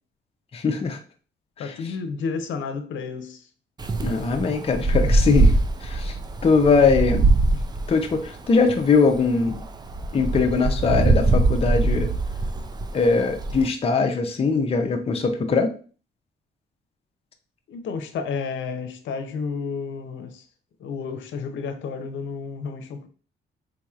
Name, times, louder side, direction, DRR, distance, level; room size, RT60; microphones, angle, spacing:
voice 1, 0.5-1.0 4.0-5.5 5.8-6.2 6.4-7.3 7.9-9.6 10.1-12.1 12.9-15.7, left 4 dB, 30° left, 0.5 m, -21 dB
voice 2, 1.6-3.5 17.7-20.5 20.8-23.1, left 5 dB, 75° left, 0.7 m, -31 dB
Wind, 3.8-13.7, right 2 dB, 20° right, 0.4 m, -23 dB
3.9 x 2.9 x 2.4 m
cardioid pair, 90°, 20 cm